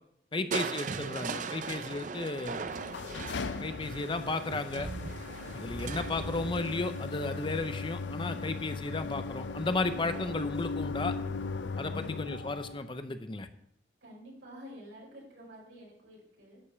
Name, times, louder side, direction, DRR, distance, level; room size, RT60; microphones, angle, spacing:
voice 1, 0.3-2.6 3.6-4.9 5.5-11.2 11.8-13.5, left 3 dB, 30° left, 9 dB, 0.7 m, -34 dB
Crushing, 0.5-8.5 10.0-10.5 11.0-11.1, right 4 dB, 45° right, 0.5 m, -40 dB
sound 1, 2.6-12.9, left 4 dB, 80° left, 0.5 m, -38 dB
voice 2, 14.0-16.6, equal, 90° right, -3 dB, 5.2 m, -50 dB
11.5 x 5.3 x 7.2 m, 0.72 s
head